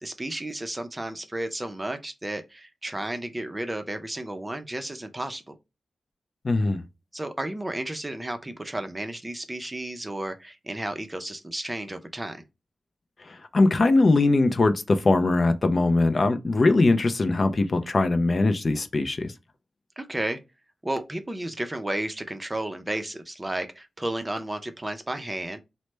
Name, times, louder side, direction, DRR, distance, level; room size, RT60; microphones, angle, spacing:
voice 1, 0.0-5.5 7.1-12.4 20.0-20.4 20.8-25.6, right 1 dB, 20° right, 0.5 m, -33 dB
voice 2, 6.4-6.8 13.5-19.3, left 2 dB, 45° left, 0.4 m, -21 dB
3.1 x 2.1 x 3.1 m
cardioid pair, 80°, 0 cm